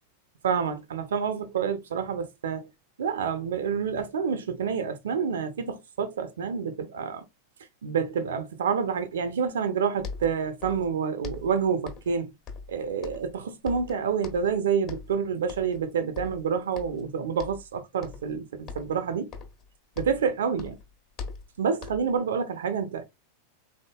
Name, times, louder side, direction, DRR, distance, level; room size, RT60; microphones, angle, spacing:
voice 1, 0.4-2.7 3.0-7.2 7.8-12.3 12.7-19.3 20.0-20.8 21.6-23.1, right 6 dB, 65° right, 0.5 m, -28 dB
sound 1, 9.7-9.8 10.0-10.9 11.2-12.2 12.5-13.4 13.7-14.6 14.9-15.2 15.5-15.9 16.2-17.1 17.4-17.7 18.0-18.4 18.7-20.3 20.6-22.2, left 5 dB, 35° left, 1.3 m, -41 dB
3.8 x 3.5 x 2.3 m
figure-of-eight pair, 90°, 0 cm